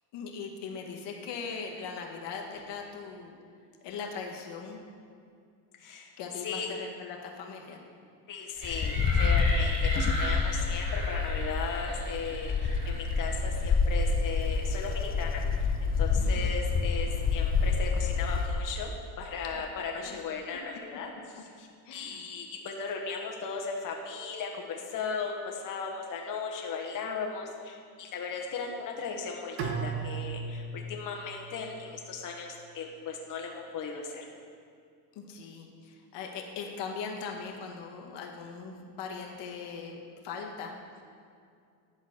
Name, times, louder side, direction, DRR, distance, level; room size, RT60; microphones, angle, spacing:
voice 1, 0.1-3.4 3.8-4.8 6.2-7.8 16.1-16.4 19.5-19.6 19.9-20.2 21.9-22.2 35.1-40.7, left 5 dB, 70° left, 1 dB, 1.3 m, -40 dB
voice 2, 5.8-6.1 6.4-6.7 8.3-18.9 19.2-34.2, left 5 dB, 45° left, 1 dB, 1.1 m, -37 dB
Wind, 8.6-18.6, left 4 dB, 20° left, 0.4 m, -28 dB
sound 1, 8.6-13.8, equal, 25° right, 2.3 m, -37 dB
Bowed string instrument, 29.6-32.6, right 5 dB, 75° right, 1.3 m, -37 dB
11.0 x 4.0 x 6.4 m, 2.4 s
cardioid pair, 105°, 43 cm